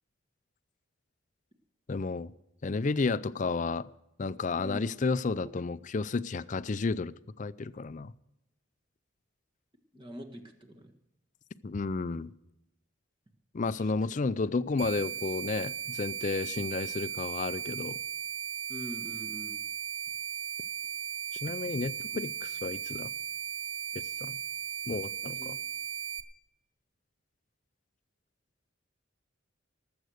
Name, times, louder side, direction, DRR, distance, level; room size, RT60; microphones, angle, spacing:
voice 1, 1.9-2.3 2.6-3.9 4.2-8.1 11.6-12.3 13.5-18.0 21.4-23.1 24.2-24.4 24.9-25.6, left 3 dB, 40° left, 16 dB, 0.4 m, -32 dB
voice 2, 9.9-10.9 13.8-13.9 18.7-19.6 25.4-25.5, equal, 25° right, 3 dB, 1.8 m, -43 dB
sound 1, 14.8-26.2, right 9 dB, 65° right, 1.0 m, -37 dB
18.5 x 8.0 x 6.5 m, 0.88 s
head